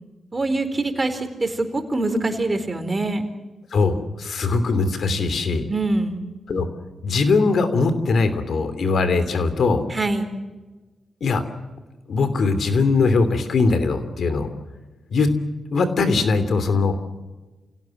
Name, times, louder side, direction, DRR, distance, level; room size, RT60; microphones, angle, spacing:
voice 1, 0.3-3.2 5.7-6.2 9.9-10.3, right 2 dB, 30° right, 8 dB, 4.4 m, -24 dB
voice 2, 3.7-5.7 6.5-6.7 7.0-9.8 11.2-11.4 12.1-14.5 15.1-15.3 15.7-17.0, left 4 dB, 70° left, 11 dB, 3.0 m, -20 dB
28.0 x 17.0 x 7.7 m, 1.2 s
cardioid pair, 55°, 0 cm